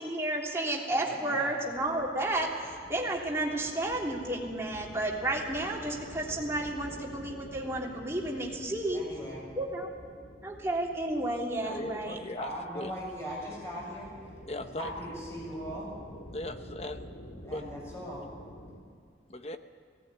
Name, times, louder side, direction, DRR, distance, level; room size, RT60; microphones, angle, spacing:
voice 1, 0.0-9.0 9.6-9.9 10.4-12.2, right 1 dB, 15° right, -3 dB, 3.2 m, -32 dB
voice 2, 1.0-1.6 8.9-9.4 11.7-14.1 14.8-15.9 17.4-18.2, equal, 15° left, -4 dB, 7.4 m, -40 dB
sound 1, 1.7-18.8, equal, 85° left, 2.9 m, -48 dB
voice 3, 11.6-12.9 14.5-14.9 16.3-17.1 17.5-17.7 19.3-19.6, left 2 dB, 35° left, 8 dB, 1.0 m, -38 dB
19.5 x 17.5 x 9.7 m, 2.2 s
head